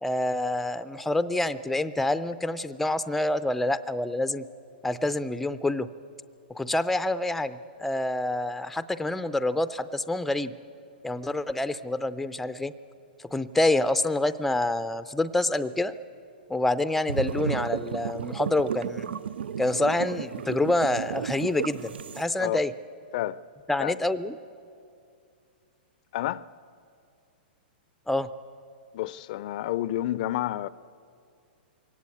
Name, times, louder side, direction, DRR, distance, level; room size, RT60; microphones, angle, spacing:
voice 1, 0.0-4.4 4.8-5.9 6.5-10.5 11.0-12.7 13.3-15.9 16.5-19.2 19.6-22.7 23.7-24.3 28.1-28.3, left 2 dB, 5° left, 0.5 m, -27 dB
sound 1, 17.1-22.2, right 7 dB, 85° right, 0.5 m, -33 dB
voice 2, 26.1-26.4 28.9-30.7, left 14 dB, 50° left, 0.5 m, -29 dB
22.0 x 17.5 x 8.4 m
hypercardioid pair, 140°, 6 cm